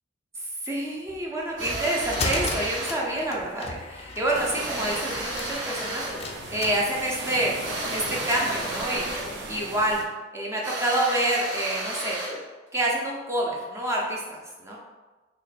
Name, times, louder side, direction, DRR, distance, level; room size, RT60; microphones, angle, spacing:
voice 1, 0.4-7.5 7.9-9.1 9.5-10.0 10.3-12.2 12.7-14.8, right 1 dB, 15° right, -3 dB, 0.6 m, -28 dB
sound 1, 1.1-8.5, left 3 dB, 30° left, 0.4 m, -36 dB
sound 2, 1.6-3.0 4.5-6.2 7.6-9.4 10.6-12.4, right 1 dB, 85° right, 1.5 m, -33 dB
sound 3, 4.3-10.0, right 2 dB, 60° right, 0.5 m, -36 dB
2.9 x 2.5 x 4.1 m, 1.2 s
head